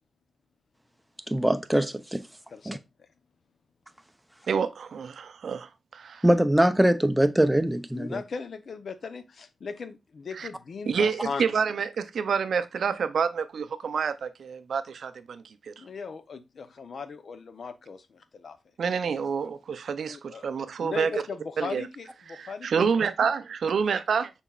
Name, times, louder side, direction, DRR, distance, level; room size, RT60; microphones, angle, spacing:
voice 1, 1.3-2.2 2.7-2.8 6.2-8.2, right 1 dB, 10° right, 0.6 m, -22 dB
voice 2, 2.5-3.1 7.9-11.6 15.8-18.6 19.4-19.5 20.1-20.5 20.8-22.9, left 5 dB, 65° left, 0.7 m, -38 dB
voice 3, 4.5-6.2 10.4-10.5 10.9-15.7 18.8-21.1 21.6-21.8 22.3-24.3, right 6 dB, 80° right, 0.5 m, -28 dB
5.8 x 4.0 x 2.3 m
cardioid pair, 80°, 0 cm